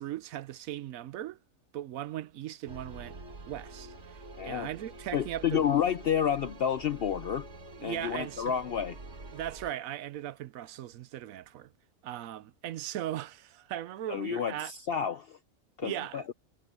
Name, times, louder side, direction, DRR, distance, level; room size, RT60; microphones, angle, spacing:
voice 1, 0.0-1.4 1.7-3.2 3.5-5.6 7.7-8.6 9.3-11.7 12.0-14.7 15.8-16.3, right 12 dB, 85° right, 1.1 m, -38 dB
sound 1, 2.7-9.7, right 2 dB, 55° right, 2.4 m, -47 dB
voice 2, 4.4-4.7 5.1-7.5 7.8-9.0 14.1-15.4 15.8-16.2, left 8 dB, 55° left, 0.7 m, -30 dB
omnidirectional pair, 1.4 m